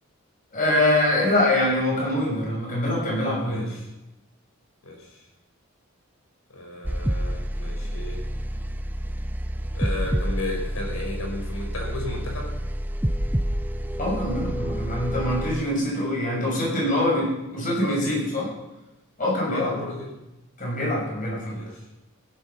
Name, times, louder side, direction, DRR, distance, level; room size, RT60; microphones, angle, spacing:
voice 1, 0.5-3.7 14.0-18.5 19.2-19.9 20.6-21.6, left 1 dB, 40° left, -3 dB, 6.8 m, -24 dB
voice 2, 3.4-3.9 4.8-5.2 6.5-8.2 9.7-12.5 17.8-18.3 19.5-20.1 21.5-21.9, left 1 dB, 90° left, 0 dB, 5.4 m, -34 dB
sound 1, 6.8-15.5, equal, 10° right, 0.6 m, -28 dB
16.0 x 11.5 x 5.8 m, 0.96 s
head